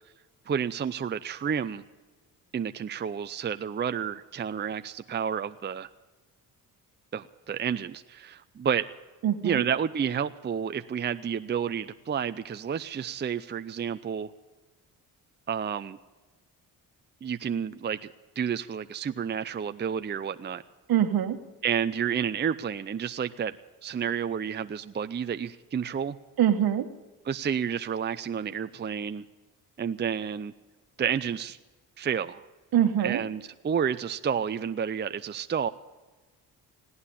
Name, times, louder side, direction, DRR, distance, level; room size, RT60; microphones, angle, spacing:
voice 1, 0.5-1.8 2.5-5.9 7.1-8.8 9.4-14.3 15.5-16.0 17.2-18.1 18.4-20.6 21.6-23.6 23.8-26.2 27.3-29.3 29.8-30.5 31.0-31.6 32.0-32.5 33.0-35.7, right 7 dB, 25° right, 11 dB, 0.6 m, -30 dB
voice 2, 9.2-9.6 20.9-21.4 26.4-26.9 32.7-33.2, right 10 dB, 65° right, 8 dB, 1.5 m, -24 dB
17.5 x 9.6 x 8.5 m, 1.2 s
supercardioid pair, 65°, 39 cm